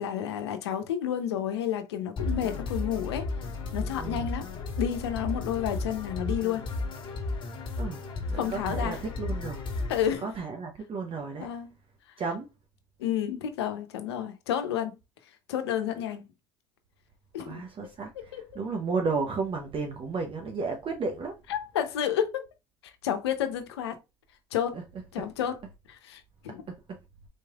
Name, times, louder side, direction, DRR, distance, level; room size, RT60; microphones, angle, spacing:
voice 1, 0.0-3.3 3.7-4.5 4.8-6.7 8.3-9.0 9.9-10.3 11.4-11.7 13.0-15.0 15.5-16.2 17.3-17.6 18.3-18.4 21.5-22.5 23.0-24.0 24.5-24.8 25.1-25.6 25.9-26.6, left 9 dB, 85° left, 0.7 m, -30 dB
sound 1, 2.2-10.2, left 3 dB, 40° left, 1.5 m, -34 dB
voice 2, 4.0-4.4 7.8-8.0 8.3-9.6 10.2-11.5 12.2-12.5 17.4-21.4 24.7-24.8 26.7-27.0, right 4 dB, 40° right, 0.8 m, -33 dB
4.2 x 3.1 x 2.4 m
hypercardioid pair, 70°, 13 cm